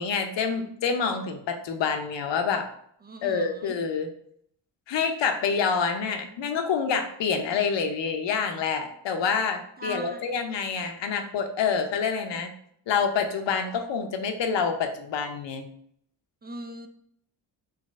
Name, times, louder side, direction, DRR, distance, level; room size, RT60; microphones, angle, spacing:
voice 1, 0.0-2.7 3.2-4.1 4.9-12.5 12.9-15.7, left 6 dB, 65° left, 6 dB, 0.8 m, -27 dB
voice 2, 3.0-3.8 9.8-10.3 16.4-16.9, right 1 dB, 25° right, 7 dB, 0.4 m, -39 dB
4.1 x 3.0 x 3.6 m, 0.67 s
cardioid pair, 90°, 47 cm